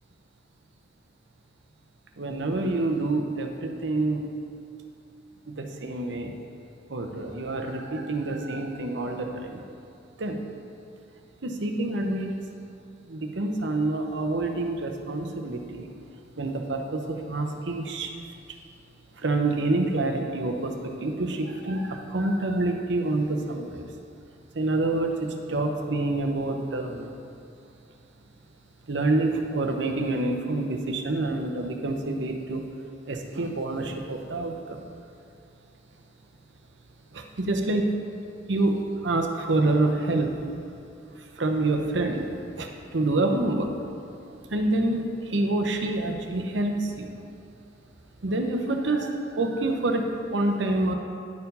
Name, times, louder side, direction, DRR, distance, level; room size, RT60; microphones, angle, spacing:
voice 1, 2.2-4.3 5.5-6.3 6.9-9.6 10.2-10.4 11.4-12.4 13.1-15.9 16.4-18.1 19.2-23.9 24.5-27.1 28.9-32.7 33.1-34.8 37.1-37.9 38.5-40.3 41.2-42.3 42.6-43.7 44.1-47.1 48.2-50.9, right 2 dB, 75° right, 4 dB, 0.8 m, -27 dB
10.5 x 4.6 x 5.4 m, 2.6 s
head